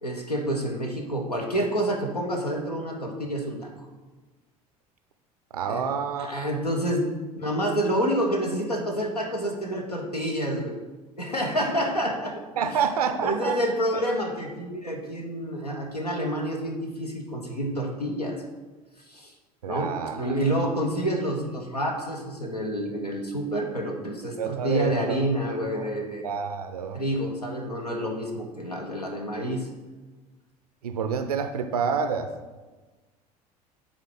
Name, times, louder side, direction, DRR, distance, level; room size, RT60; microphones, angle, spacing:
voice 1, 0.0-3.9 5.7-5.8 6.2-7.1 7.4-10.8 11.2-12.7 13.1-18.4 19.1-19.3 19.7-19.9 20.2-26.2 26.9-29.7, equal, 85° left, 1 dB, 0.9 m, -28 dB
voice 2, 5.5-6.4 12.6-13.6 13.9-14.0 19.6-20.6 24.4-25.2 25.7-25.9 26.2-27.0 30.8-32.3, right 6 dB, 75° right, 8 dB, 0.5 m, -28 dB
9.9 x 3.7 x 3.9 m, 1.3 s
figure-of-eight pair, 65°, 20 cm